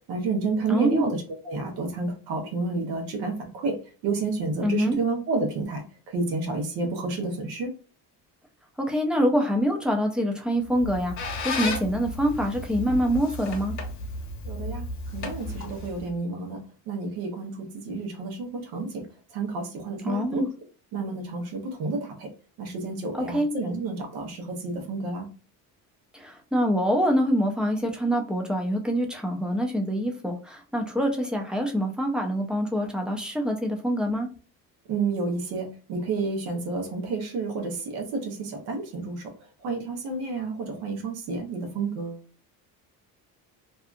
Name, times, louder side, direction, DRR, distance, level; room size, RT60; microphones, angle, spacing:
voice 1, 0.1-1.2 1.4-3.8 4.0-7.7 14.4-14.9 15.1-16.6 16.9-19.1 19.3-20.4 20.9-22.3 22.6-25.3 34.9-39.3 39.6-42.2, right 3 dB, 85° right, 3 dB, 1.0 m, -30 dB
voice 2, 0.7-1.0 4.6-5.0 8.8-13.8 20.0-20.5 23.1-23.5 26.1-34.3, equal, 5° right, 2 dB, 0.3 m, -25 dB
Squeak, 10.7-16.1, left 2 dB, 50° left, 0.9 m, -34 dB
2.7 x 2.3 x 2.5 m, 0.37 s
cardioid pair, 145°, 37 cm